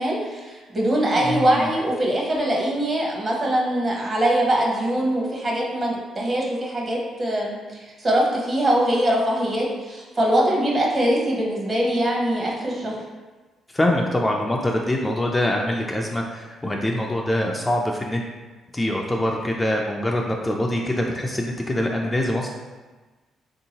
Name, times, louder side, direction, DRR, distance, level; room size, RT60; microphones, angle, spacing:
voice 1, 0.0-13.0, right 1 dB, 35° right, -2 dB, 0.9 m, -22 dB
voice 2, 1.1-1.7 13.7-18.2 18.7-22.5, left 1 dB, 15° left, 0 dB, 0.3 m, -24 dB
3.6 x 2.7 x 2.8 m, 1.2 s
cardioid pair, 90°, 0 cm